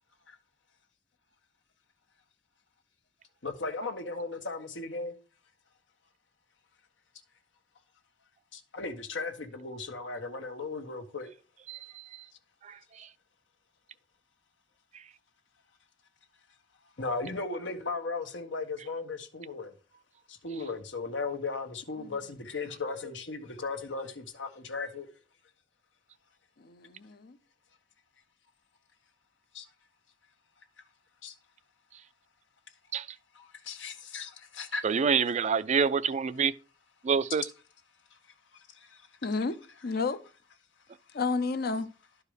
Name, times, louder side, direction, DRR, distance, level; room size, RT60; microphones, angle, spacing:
voice 1, 3.4-5.1 8.5-11.3 17.0-19.7 20.3-25.1 29.5-29.7 31.2-31.3 33.3-34.8 38.7-39.1, left 3 dB, 85° left, 1.3 m, -36 dB
voice 2, 11.7-12.0 12.6-13.1 32.9-33.1 34.8-36.5 37.0-37.4, right 6 dB, 40° right, 0.4 m, -27 dB
voice 3, 26.6-27.4 39.2-39.6 39.8-40.2 41.1-41.9, left 4 dB, 55° left, 0.6 m, -31 dB
11.5 x 4.8 x 4.9 m
head